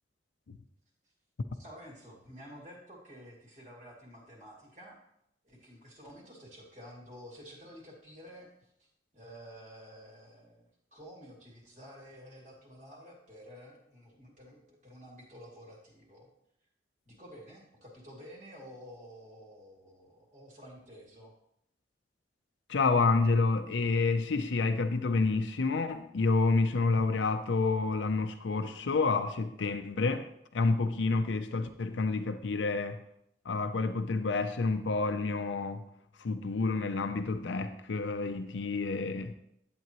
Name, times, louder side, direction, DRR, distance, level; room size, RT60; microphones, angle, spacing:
voice 1, 1.6-5.0 5.4-8.5 8.8-16.3 17.1-21.3, equal, 40° right, 2.6 m, -51 dB
voice 2, 22.7-30.3 30.5-33.0 33.4-35.9 36.2-39.3, left 3 dB, 90° left, 0.6 m, -29 dB
11.0 x 8.4 x 3.0 m
head